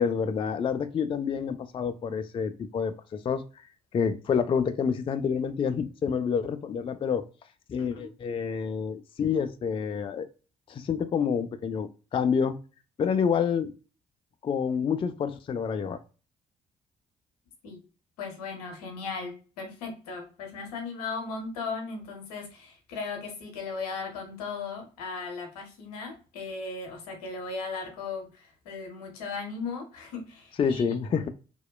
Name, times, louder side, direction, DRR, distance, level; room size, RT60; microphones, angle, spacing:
voice 1, 0.0-3.4 3.9-7.3 7.7-10.3 10.7-12.6 13.0-13.7 14.4-16.0 30.6-31.3, left 6 dB, 25° left, 11 dB, 0.3 m, -28 dB
voice 2, 7.8-8.1 17.6-17.8 18.2-30.8 31.1-31.3, left 4 dB, 80° left, 2 dB, 0.7 m, -37 dB
2.8 x 2.0 x 2.2 m, 0.35 s
figure-of-eight pair, 40°, 20 cm